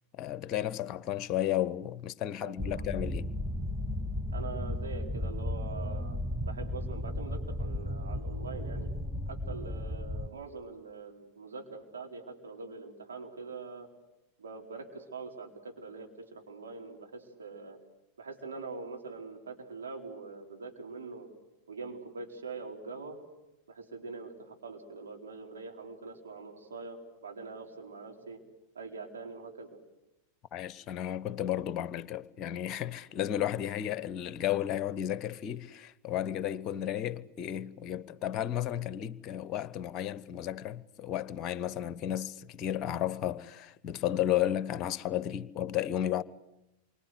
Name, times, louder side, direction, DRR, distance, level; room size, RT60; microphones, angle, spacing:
voice 1, 0.2-3.3 30.5-46.2, left 11 dB, 35° left, 1.0 m, -33 dB
voice 2, 2.4-3.0 4.3-8.9 9.3-13.9 14.4-17.8 18.2-21.3 21.7-23.2 23.7-28.4 28.7-29.7, right 4 dB, 70° right, 4.4 m, -43 dB
sound 1, 2.6-10.3, left 1 dB, ahead, 1.0 m, -35 dB
28.5 x 24.5 x 8.1 m
figure-of-eight pair, 90°, 0 cm